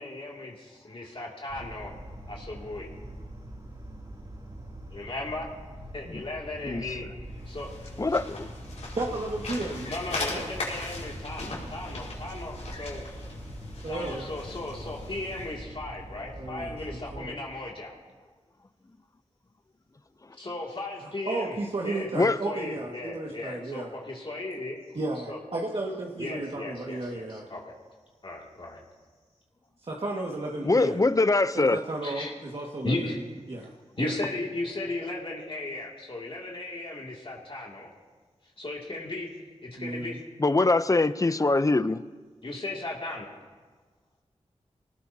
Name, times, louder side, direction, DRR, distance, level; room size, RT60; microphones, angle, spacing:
voice 1, 0.0-1.9 2.3-2.9 4.9-5.5 5.9-7.1 7.5-7.8 9.8-13.1 13.9-17.9 20.4-21.6 21.8-22.1 22.4-24.8 25.3-25.4 26.2-27.7 28.2-28.8 30.9-31.0 32.0-32.3 32.8-33.2 34.0-37.9 38.6-39.3 39.6-40.2 42.4-43.3, left 2 dB, 50° left, -3 dB, 2.5 m, -36 dB
sound 1, 1.5-17.3, right 1 dB, 40° right, 2.9 m, -43 dB
sound 2, 7.3-15.6, left 2 dB, 80° left, 4.9 m, -39 dB
voice 2, 8.0-8.5 22.1-22.4 30.6-31.8 40.4-42.0, left 3 dB, 30° left, 13 dB, 0.7 m, -23 dB
voice 3, 9.0-10.0 10.3-10.5 13.8-14.3 16.4-17.4 20.9-23.9 24.9-27.5 29.9-31.1 31.5-33.7 34.0-34.2 39.8-40.2, right 2 dB, 55° right, -2 dB, 1.9 m, -34 dB
25.0 x 18.5 x 2.8 m, 1.4 s
cardioid pair, 55°, 12 cm